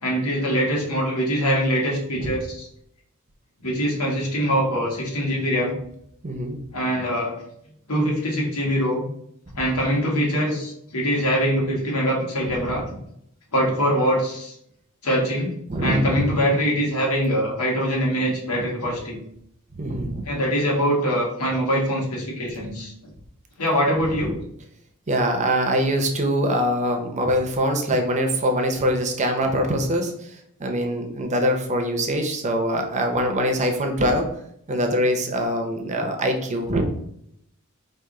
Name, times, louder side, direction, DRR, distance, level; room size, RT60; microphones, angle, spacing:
voice 1, 0.0-2.7 3.6-5.7 6.7-7.3 7.9-9.1 9.5-12.8 13.5-14.5 15.0-19.2 20.2-22.9 23.6-24.4, equal, 85° left, -2 dB, 1.4 m, -23 dB
voice 2, 6.2-6.6 12.6-12.7 15.7-16.4 19.7-20.2 22.6-22.7 25.1-30.1 30.6-34.3 34.7-36.8, equal, 35° right, 4 dB, 0.6 m, -23 dB
4.7 x 2.5 x 3.7 m, 0.72 s
head